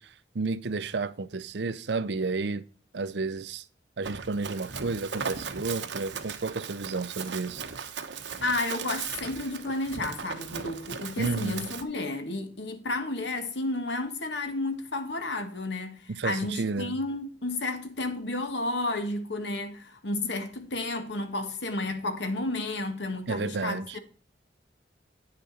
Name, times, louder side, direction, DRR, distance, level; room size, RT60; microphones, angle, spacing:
voice 1, 0.0-2.6 2.9-3.6 4.0-7.6 11.2-11.6 16.1-17.0 23.3-24.0, right 3 dB, 70° right, 0.6 m, -31 dB
Run, 4.0-11.8, right 6 dB, 85° right, 1.1 m, -37 dB
voice 2, 8.4-24.0, left 2 dB, 75° left, 1.7 m, -32 dB
9.9 x 6.8 x 4.2 m
head